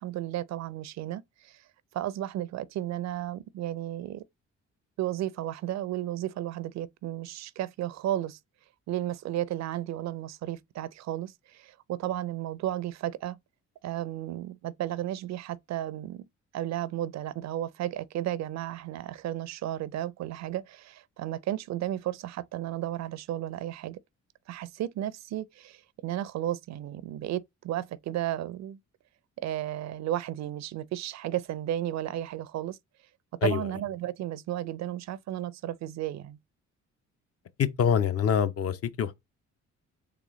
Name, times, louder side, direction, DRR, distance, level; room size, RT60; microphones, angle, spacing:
voice 1, 0.0-1.6 1.9-4.2 5.0-8.4 8.9-13.4 13.8-16.2 16.5-24.0 24.5-28.8 29.4-32.8 33.4-36.4, right 13 dB, 65° right, 0.4 m, -33 dB
voice 2, 37.6-39.1, left 7 dB, 50° left, 0.6 m, -25 dB
3.8 x 3.3 x 3.0 m
cardioid pair, 90°, 30 cm